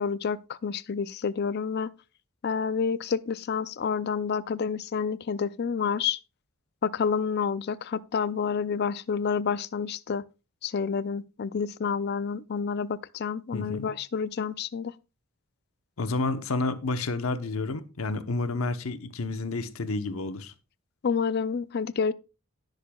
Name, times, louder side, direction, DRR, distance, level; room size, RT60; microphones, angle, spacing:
voice 1, 0.0-1.9 2.4-6.2 6.8-10.2 10.6-14.9 21.0-22.1, left 6 dB, 50° left, 0.4 m, -29 dB
voice 2, 13.5-13.9 16.0-20.5, left 3 dB, 85° left, 0.9 m, -30 dB
18.5 x 6.5 x 2.3 m
head